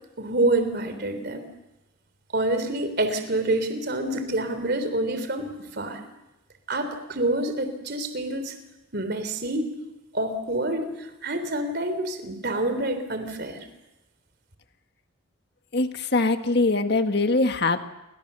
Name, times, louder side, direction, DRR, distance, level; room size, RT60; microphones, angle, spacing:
voice 1, 0.2-1.5 2.3-6.0 6.7-8.5 8.9-9.7 10.1-13.7, right 1 dB, 55° right, 8 dB, 3.6 m, -27 dB
voice 2, 15.7-17.8, left 3 dB, 55° left, 7 dB, 1.8 m, -22 dB
29.0 x 23.5 x 7.0 m, 0.99 s
head